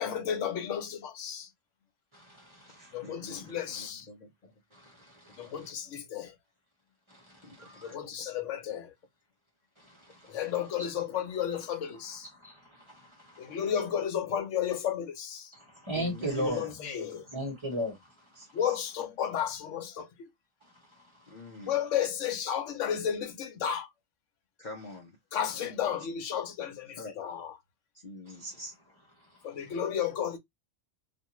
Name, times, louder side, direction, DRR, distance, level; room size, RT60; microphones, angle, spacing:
voice 1, 0.0-1.5 2.9-4.1 5.4-6.3 7.8-8.9 10.3-12.3 13.4-15.5 16.4-17.3 18.5-20.3 21.7-23.9 25.3-27.5 29.4-30.4, left 9 dB, 75° left, 1.0 m, -33 dB
voice 2, 2.1-3.6 4.7-5.7 7.1-7.9 9.8-10.5 10.8-10.9 12.3-13.6 15.5-16.8 17.3-18.1 20.6-20.7 21.5-21.7 28.3-28.4, equal, 25° right, 1.0 m, -38 dB
voice 3, 2.7-4.5 7.4-8.0 15.9-16.7 17.0-17.2 18.4-18.8 21.3-21.8 24.6-25.1 25.5-25.6 27.0-27.2 28.0-28.7, left 2 dB, 50° left, 0.6 m, -45 dB
2.5 x 2.3 x 2.9 m
omnidirectional pair, 1.3 m